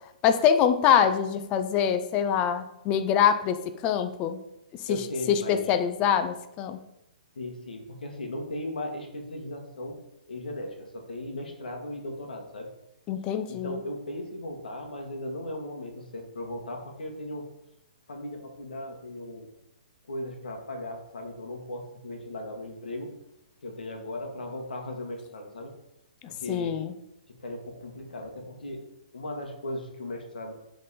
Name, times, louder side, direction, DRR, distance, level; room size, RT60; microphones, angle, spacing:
voice 1, 0.2-4.4 4.9-5.0 5.3-6.8 13.1-13.8 26.5-26.9, left 8 dB, 20° left, 9 dB, 0.4 m, -24 dB
voice 2, 4.9-5.6 7.3-10.0 10.3-12.7 13.5-17.5 18.1-19.5 20.1-23.1 23.6-25.7 26.3-26.8 27.4-30.5, left 1 dB, 85° left, 3 dB, 1.5 m, -37 dB
7.2 x 3.9 x 4.2 m, 0.86 s
hypercardioid pair, 150°, 5 cm